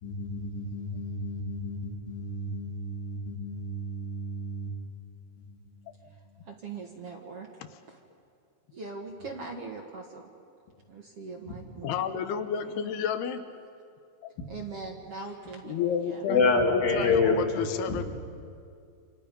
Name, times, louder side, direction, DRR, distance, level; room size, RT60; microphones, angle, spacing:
voice 1, 0.0-4.7 16.3-17.6 17.9-18.0, left 3 dB, 65° left, 0 dB, 4.5 m, -28 dB
voice 2, 6.1-8.0 8.7-10.3 10.9-13.1 14.5-16.3, right 4 dB, 50° right, 1 dB, 2.0 m, -42 dB
voice 3, 11.8-13.5 14.2-14.3 15.7-18.0, left 8 dB, 85° left, 9 dB, 3.0 m, -31 dB
28.5 x 27.5 x 5.3 m, 2.3 s
omnidirectional pair, 4.5 m